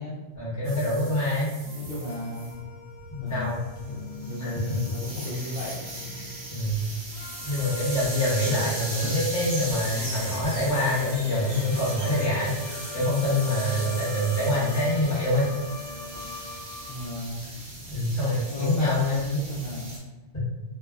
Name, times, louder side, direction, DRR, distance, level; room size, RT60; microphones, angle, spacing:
voice 1, 0.4-1.5 3.1-3.6 4.4-4.5 6.5-6.9 7.4-12.5 12.9-15.5 17.9-19.5 20.3-20.5, left 1 dB, 15° left, -9 dB, 1.0 m, -25 dB
sound 1, 0.6-2.5 3.3-20.0, right 1 dB, 75° right, 1.2 m, -38 dB
sound 2, 1.6-17.1, left 2 dB, 90° left, 1.0 m, -41 dB
voice 2, 1.7-2.6 3.2-3.6 4.2-5.8 8.4-8.6 9.0-9.1 16.9-17.5 18.5-20.0, left 2 dB, 60° left, -6 dB, 0.7 m, -35 dB
3.2 x 2.0 x 2.3 m, 1.1 s
omnidirectional pair, 1.3 m